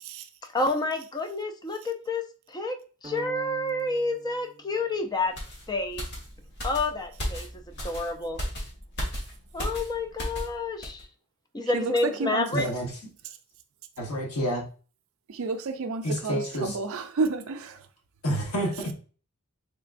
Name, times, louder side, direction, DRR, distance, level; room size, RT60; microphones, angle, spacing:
voice 1, 0.4-5.4 5.7-6.0 6.6-8.4 9.5-11.1 11.5-12.7, left 2 dB, 20° left, 0.4 m, -29 dB
sound 1, 3.0-5.3, right 3 dB, 15° right, 0.9 m, -47 dB
sound 2, 5.4-10.5 10.8-11.0, equal, 50° left, 1.2 m, -35 dB
voice 2, 12.5-12.9 14.0-14.6 16.0-16.8 18.2-18.9, equal, 75° left, 1.1 m, -29 dB
voice 3, 15.3-17.8, right 4 dB, 65° right, 0.4 m, -30 dB
3.7 x 3.3 x 2.5 m
head